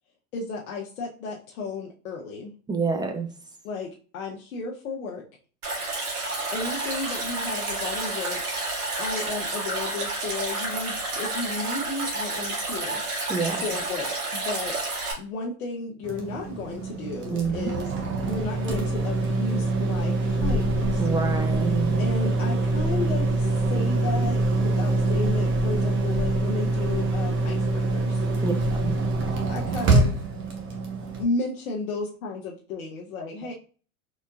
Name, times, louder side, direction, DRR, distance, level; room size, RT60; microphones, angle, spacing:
voice 1, 0.3-2.5 3.6-5.2 6.5-8.4 9.0-13.0 13.6-14.8 15.2-17.9 18.2-21.0 22.0-28.2 28.8-28.9 29.5-30.2 31.2-33.5, left 3 dB, 75° left, -2 dB, 1.0 m, -33 dB
voice 2, 2.7-3.3 13.3-13.6 17.3-17.7 21.0-22.1 28.4-28.5 28.8-28.9, right 5 dB, 10° right, 5 dB, 0.7 m, -27 dB
Stream, 5.6-15.1, right 2 dB, 90° right, 2.1 m, -30 dB
sound 1, 16.0-31.2, right 2 dB, 25° right, 1.1 m, -25 dB
4.3 x 3.9 x 2.4 m, 0.38 s
hypercardioid pair, 100°, 43 cm